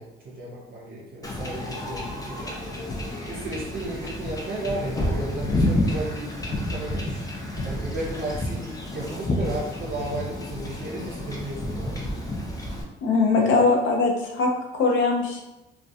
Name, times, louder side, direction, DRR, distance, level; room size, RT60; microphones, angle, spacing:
voice 1, 0.0-2.6 3.2-7.3 7.6-12.1 13.3-13.6, right 1 dB, 50° right, -4 dB, 0.6 m, -34 dB
Wind / Ocean / Boat Water vehicle, 1.2-12.8, left 1 dB, 20° left, 0.5 m, -30 dB
voice 2, 13.0-15.4, left 3 dB, 75° left, 0 dB, 0.6 m, -21 dB
2.3 x 2.1 x 2.6 m, 0.95 s
cardioid pair, 90°, 20 cm